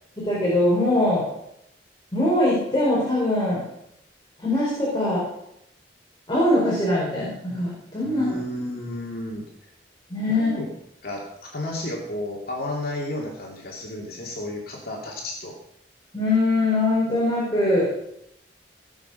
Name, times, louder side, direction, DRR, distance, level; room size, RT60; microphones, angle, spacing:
voice 1, 0.2-1.3 2.1-3.6 4.4-5.2 6.3-8.4 10.1-10.5 16.1-17.9, left 1 dB, 25° left, -6 dB, 5.1 m, -22 dB
voice 2, 8.0-9.4 10.3-10.7 11.0-15.6, left 1 dB, 55° left, -2 dB, 2.8 m, -32 dB
19.0 x 7.4 x 5.8 m, 0.78 s
head